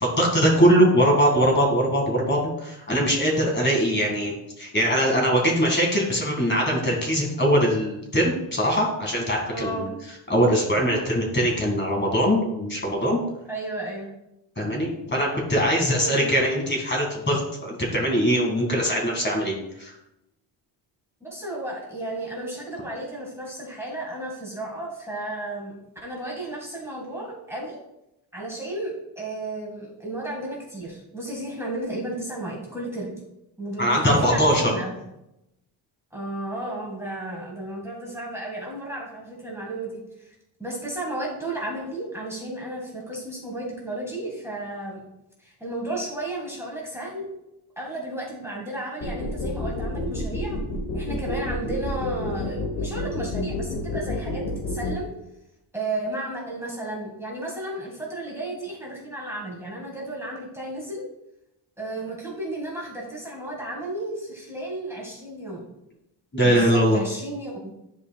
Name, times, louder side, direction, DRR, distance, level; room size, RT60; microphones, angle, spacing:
voice 1, 0.0-9.8 10.3-13.2 14.6-19.5 19.8-19.9 33.8-34.6 66.3-67.0, equal, 20° left, -1 dB, 2.0 m, -22 dB
voice 2, 9.5-9.9 13.5-14.1 15.9-16.3 21.2-27.8 28.3-33.1 33.6-34.9 36.1-40.3 40.6-45.0 45.4-47.3 47.8-50.6 50.9-55.1 55.7-61.0 61.8-65.7 66.4-67.7, right 1 dB, 5° right, -3 dB, 1.8 m, -33 dB
sound 1, 49.0-54.9, left 2 dB, 90° left, 1.5 m, -29 dB
10.5 x 4.8 x 2.3 m, 0.86 s
cardioid pair, 105°, 49 cm